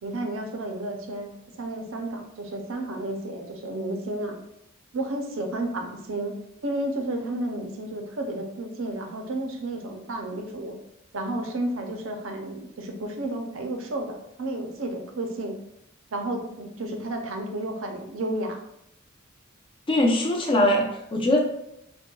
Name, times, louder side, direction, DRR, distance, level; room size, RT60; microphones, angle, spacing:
voice 1, 0.0-1.3 1.6-4.4 4.9-6.3 6.6-10.8 11.1-15.6 16.1-18.6, right 1 dB, 65° right, 4 dB, 0.5 m, -32 dB
voice 2, 19.9-21.4, left 1 dB, 25° left, 1 dB, 0.4 m, -21 dB
5.1 x 2.2 x 2.2 m, 0.81 s
head